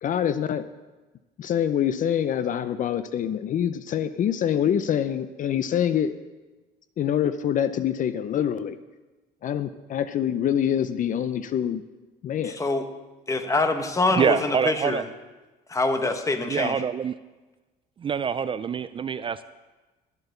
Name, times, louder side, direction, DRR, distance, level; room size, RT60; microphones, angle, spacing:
voice 1, 0.0-0.6 1.4-6.1 7.0-8.8 9.4-11.8 12.2-12.6, left 9 dB, 50° left, 12 dB, 0.6 m, -25 dB
voice 2, 12.4-12.8 13.3-15.0 15.7-16.8, left 3 dB, 20° left, 7 dB, 1.2 m, -25 dB
voice 3, 14.2-15.0 16.5-17.1 18.0-19.4, right 7 dB, 30° right, 14 dB, 0.4 m, -25 dB
12.0 x 8.1 x 6.7 m, 1.2 s
cardioid pair, 110°, 17 cm